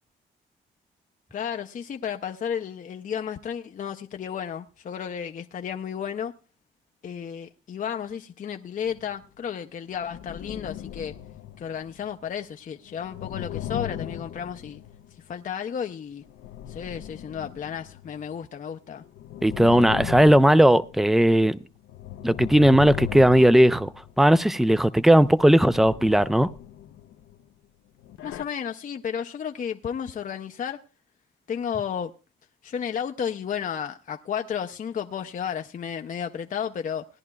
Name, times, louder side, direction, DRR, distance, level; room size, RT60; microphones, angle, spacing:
voice 1, 1.3-6.3 7.0-11.1 11.6-14.8 15.3-16.2 16.7-19.0 28.2-30.8 31.5-32.1 32.6-37.1, left 8 dB, 40° left, 0.6 m, -33 dB
sound 1, 8.9-9.2 10.0-12.3 12.9-15.2 16.2-18.4 18.9-21.3 21.7-24.4 25.1-27.4 28.0-28.4, left 11 dB, 85° left, 0.7 m, -38 dB
voice 2, 19.4-21.6 22.2-23.9 24.2-26.5, right 1 dB, ahead, 0.4 m, -17 dB
19.0 x 10.5 x 2.3 m
cardioid pair, 90°, 20 cm